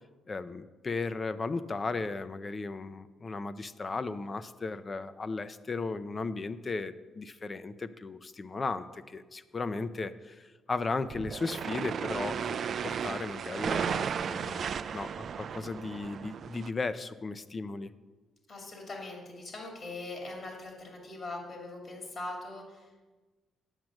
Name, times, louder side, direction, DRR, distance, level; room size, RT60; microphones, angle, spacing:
voice 1, 0.3-12.6 12.8-14.6 14.9-17.9, left 3 dB, 35° left, 13 dB, 0.5 m, -36 dB
sound 1, 11.1-16.7, right 7 dB, 55° right, 0.3 m, -34 dB
voice 2, 18.5-23.1, left 2 dB, 50° left, 0 dB, 2.5 m, -41 dB
9.0 x 6.0 x 6.3 m, 1.3 s
cardioid pair, 90°, 0 cm